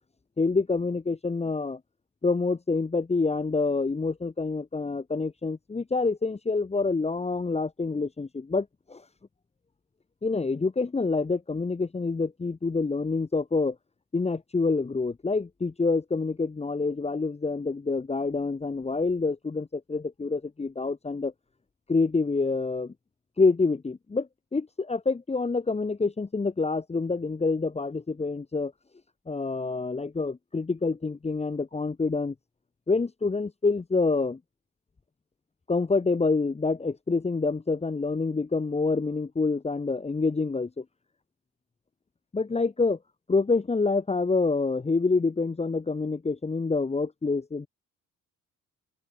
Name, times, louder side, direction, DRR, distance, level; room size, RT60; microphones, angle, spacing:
voice 1, 0.4-1.8 2.2-9.0 10.2-13.7 14.1-21.3 21.9-22.9 23.4-28.7 29.3-32.3 32.9-34.4 35.7-40.8 42.3-43.0 43.3-47.7, left 3 dB, 20° left, 1.1 m, -27 dB
open air
cardioid pair, 90°, 30 cm